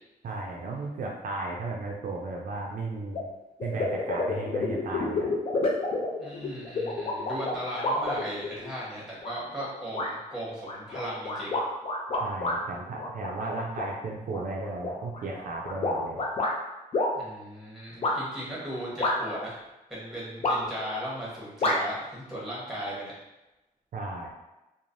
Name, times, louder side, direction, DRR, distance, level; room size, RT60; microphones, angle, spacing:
voice 1, 0.2-3.3 3.6-5.3 12.2-16.2 23.9-24.3, right 2 dB, 65° right, -1 dB, 0.4 m, -35 dB
sound 1, 3.1-3.2 3.6-8.7 9.2-9.7 9.9-10.1 10.6-12.6 13.0-13.9 14.3-16.5 16.9-17.1 18.0-18.1 19.0-19.5 20.4-20.9 21.6-21.8, left 2 dB, 40° left, 0.5 m, -29 dB
voice 2, 6.2-11.5 17.1-19.6 19.9-23.1, equal, 5° right, -6 dB, 1.0 m, -37 dB
3.1 x 2.0 x 2.6 m, 1.0 s
wide cardioid pair, 140°, 15 cm